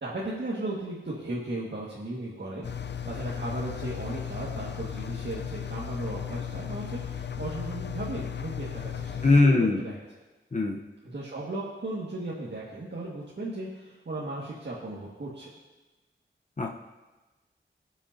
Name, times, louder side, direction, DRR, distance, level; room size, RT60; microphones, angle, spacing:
voice 1, 0.0-10.0 11.0-15.5, right 2 dB, 55° right, -6 dB, 1.9 m, -36 dB
Engine, 2.6-9.4, left 8 dB, 60° left, 0.5 m, -35 dB
voice 2, 9.2-9.8 10.5-10.8 16.6-16.7, left 3 dB, 35° left, 0 dB, 0.9 m, -21 dB
18.0 x 7.1 x 2.8 m, 1.2 s
cardioid pair, 55°, 21 cm